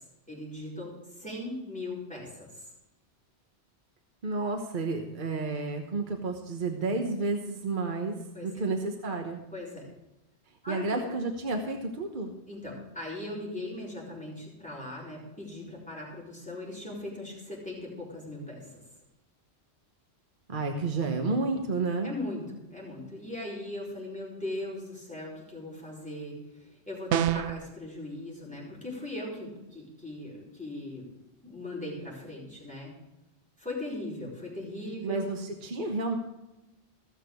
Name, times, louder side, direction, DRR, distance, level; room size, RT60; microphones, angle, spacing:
voice 1, 0.0-2.7 8.3-8.5 9.5-9.9 10.6-11.1 12.5-18.8 22.0-31.1 31.4-32.9 33.6-35.3, left 1 dB, 5° left, -4 dB, 4.6 m, -39 dB
voice 2, 4.2-8.2 8.4-9.4 10.7-12.3 20.5-22.1 35.0-36.2, right 3 dB, 50° right, 3 dB, 1.3 m, -31 dB
sound 1, 27.1-27.6, right 10 dB, 85° right, 0.9 m, -26 dB
16.0 x 6.7 x 6.4 m, 0.96 s
omnidirectional pair, 1.1 m